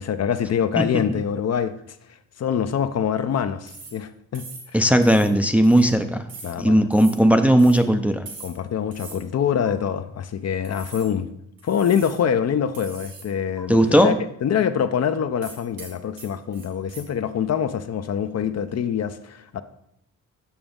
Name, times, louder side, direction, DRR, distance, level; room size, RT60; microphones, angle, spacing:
voice 1, 0.0-2.0 2.4-4.5 4.7-4.9 6.4-6.8 8.4-11.3 11.6-14.1 14.4-19.6, left 8 dB, 50° left, 11 dB, 0.5 m, -25 dB
sound 1, 3.7-4.0 4.3-4.7 5.0-5.3 5.6-5.9 6.3-6.6 6.9-7.2 7.6-7.8 8.3-8.6 8.9-9.2 9.6-9.7 10.6-11.1 11.6-12.2 12.7-13.3 13.6-13.7 15.4-17.0, right 3 dB, 80° right, 1.5 m, -42 dB
voice 2, 4.7-6.3 6.6-8.2 13.7-14.1, equal, 5° right, 7 dB, 0.4 m, -17 dB
7.1 x 5.9 x 3.7 m, 0.74 s
cardioid pair, 80°, 34 cm